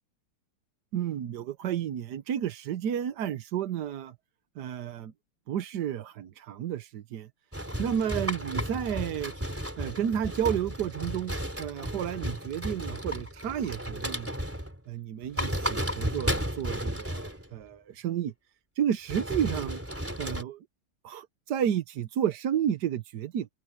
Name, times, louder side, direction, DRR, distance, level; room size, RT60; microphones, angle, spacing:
voice 1, 0.9-4.1 4.6-5.1 5.5-7.3 7.8-9.3 9.8-14.3 14.9-18.3 18.8-19.8 20.2-20.6 21.0-23.5, right 9 dB, 60° right, 1.3 m, -31 dB
sound 1, 7.5-14.8 15.2-17.5 19.1-20.4, equal, 5° right, 3.2 m, -33 dB
open air
omnidirectional pair, 2.3 m